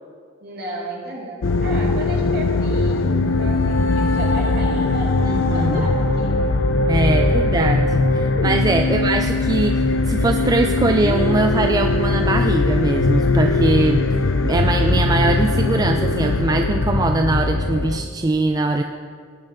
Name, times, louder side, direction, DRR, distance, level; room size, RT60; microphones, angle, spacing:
voice 1, 0.4-5.1 5.5-6.4 7.1-7.6 8.8-9.1, right 1 dB, 50° right, -3 dB, 2.2 m, -34 dB
sound 1, 1.4-18.0, left 2 dB, 70° left, 0.5 m, -20 dB
voice 2, 5.2-5.9 6.9-18.8, right 2 dB, 20° right, 5 dB, 0.3 m, -22 dB
18.0 x 6.4 x 3.8 m, 2.1 s
head